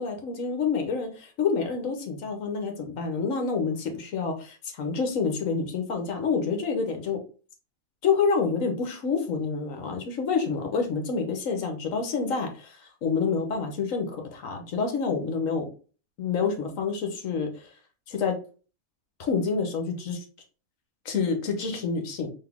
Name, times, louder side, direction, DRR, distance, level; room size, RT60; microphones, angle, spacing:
voice 1, 0.0-7.2 8.0-15.7 16.2-17.7 18.1-18.4 19.2-20.2 21.0-22.3, left 5 dB, 65° left, 5 dB, 1.3 m, -28 dB
4.0 x 3.1 x 3.5 m, 0.37 s
omnidirectional pair, 1.5 m